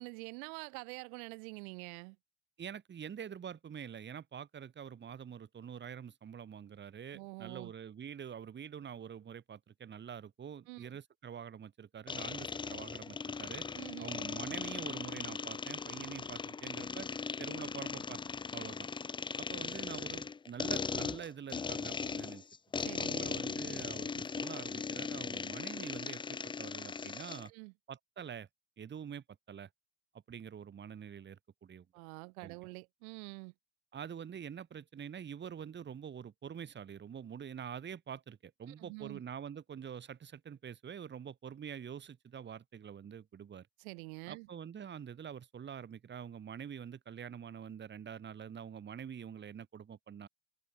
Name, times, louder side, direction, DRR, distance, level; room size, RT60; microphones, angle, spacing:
voice 1, 0.0-2.2 7.1-7.7 10.7-10.9 13.7-14.1 22.8-23.3 24.1-24.3 27.5-27.7 31.9-33.5 38.7-39.2 43.8-44.5, right 31 dB, 85° right, 0.8 m, -46 dB
voice 2, 2.6-13.7 14.0-17.1 17.4-18.2 18.5-18.9 19.4-22.4 23.0-27.5 27.9-28.5 28.8-29.7 30.3-31.9 32.4-32.5 33.9-43.7 44.3-50.3, right 8 dB, 25° right, 1.2 m, -46 dB
sound 1, 12.1-27.5, left 5 dB, 10° left, 0.4 m, -39 dB
supercardioid pair, 100°, 41 cm